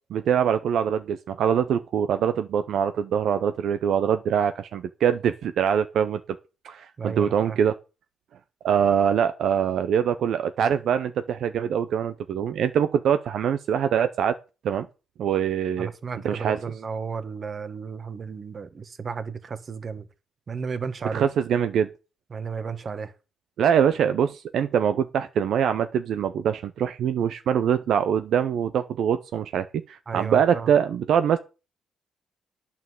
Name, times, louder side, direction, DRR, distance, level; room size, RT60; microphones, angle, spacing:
voice 1, 0.1-6.2 6.6-7.7 8.6-14.4 14.6-14.9 15.2-15.9 16.2-16.6 21.1-21.9 23.6-31.4, right 8 dB, 70° right, 0.6 m, -23 dB
voice 2, 7.0-7.6 15.8-20.0 20.5-21.3 22.3-23.1 30.1-30.7, right 5 dB, 40° right, 1.3 m, -33 dB
9.2 x 5.9 x 7.7 m
cardioid pair, 90°, 0 cm